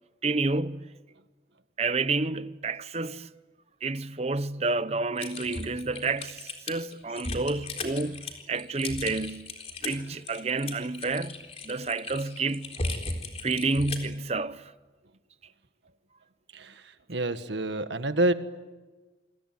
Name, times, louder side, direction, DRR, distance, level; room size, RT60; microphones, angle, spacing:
voice 1, 0.2-0.9 1.8-3.3 3.8-9.6 9.8-11.4 11.6-12.7 13.4-14.7, right 3 dB, 35° right, 0.8 m, -29 dB
Typing, 5.2-14.1, left 3 dB, 35° left, 3.9 m, -36 dB
voice 2, 17.1-18.3, right 1 dB, 90° right, 1.5 m, -27 dB
28.5 x 22.5 x 9.3 m
head